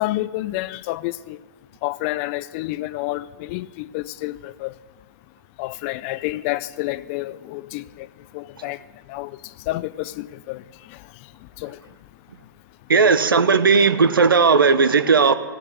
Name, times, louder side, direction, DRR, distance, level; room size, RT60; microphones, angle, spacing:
voice 1, 0.0-1.4 1.8-4.7 5.6-8.1 8.3-8.8 9.1-9.3 9.7-10.6 10.9-11.0 11.6-11.8, left 17 dB, 35° left, 0.4 m, -29 dB
voice 2, 12.9-15.3, right 5 dB, 80° right, 1.0 m, -16 dB
15.5 x 7.5 x 9.2 m
figure-of-eight pair, 115°, 12 cm